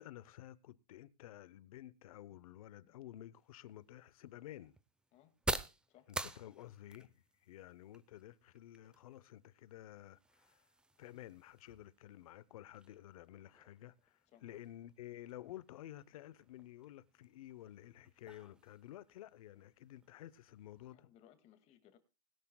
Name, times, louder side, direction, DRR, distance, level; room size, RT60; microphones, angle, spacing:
voice 1, 0.0-4.8 6.1-10.7 11.0-21.1, left 13 dB, 75° left, 0.9 m, -53 dB
sound 1, 3.3-20.9, right 2 dB, 5° right, 0.7 m, -49 dB
voice 2, 20.8-22.0, left 11 dB, 35° left, 2.3 m, -64 dB
20.5 x 12.0 x 2.3 m
supercardioid pair, 145°, 18 cm